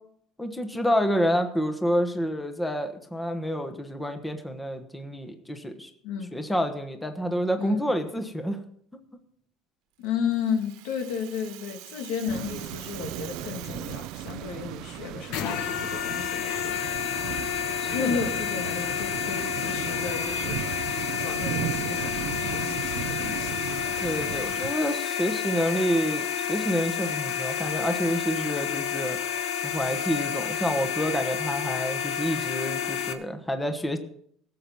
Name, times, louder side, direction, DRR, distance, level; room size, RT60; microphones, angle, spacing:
voice 1, 0.4-5.9 6.3-8.6 17.8-18.2 24.0-29.2 29.6-34.0, equal, 5° left, 6 dB, 1.2 m, -28 dB
voice 2, 6.0-6.3 7.6-7.9 10.0-16.8 17.9-20.6 21.2-23.6, left 7 dB, 90° left, 4 dB, 2.4 m, -33 dB
Rattle (instrument), 10.0-14.8, right 14 dB, 85° right, 1.4 m, -45 dB
sound 1, 12.3-24.7, right 13 dB, 65° right, 0.5 m, -36 dB
sound 2, 15.3-33.1, left 8 dB, 70° left, 1.4 m, -30 dB
17.5 x 7.8 x 5.5 m, 0.67 s
cardioid pair, 155°, 0 cm